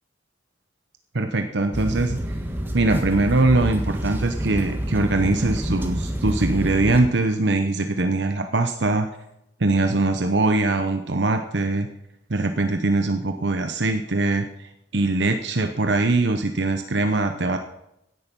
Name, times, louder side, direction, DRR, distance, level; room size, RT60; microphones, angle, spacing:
voice 1, 1.1-2.2 2.7-9.1 9.6-11.9 12.3-17.6, right 2 dB, 65° right, 7 dB, 0.9 m, -22 dB
sound 1, 1.7-7.0, equal, 10° right, 1.4 m, -28 dB
16.0 x 10.5 x 5.4 m, 0.83 s
head